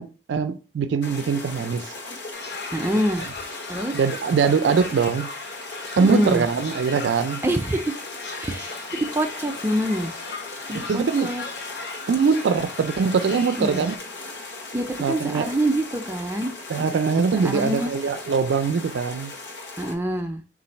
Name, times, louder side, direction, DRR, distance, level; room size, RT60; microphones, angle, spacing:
voice 1, 0.0-1.9 3.9-5.3 6.0-7.4 10.7-11.3 12.1-13.9 15.0-15.5 16.7-19.3, right 5 dB, 90° right, 0.4 m, -22 dB
sound 1, 1.0-20.0, left 3 dB, 85° left, 1.0 m, -38 dB
sound 2, 2.3-14.0, left 3 dB, 65° left, 0.7 m, -38 dB
voice 2, 2.7-3.3 3.7-4.0 6.0-6.5 7.4-7.9 8.4-10.1 10.7-11.4 13.6-14.0 14.7-16.5 17.3-17.9 19.8-20.4, right 1 dB, 15° right, 0.4 m, -25 dB
3.9 x 2.5 x 4.1 m
head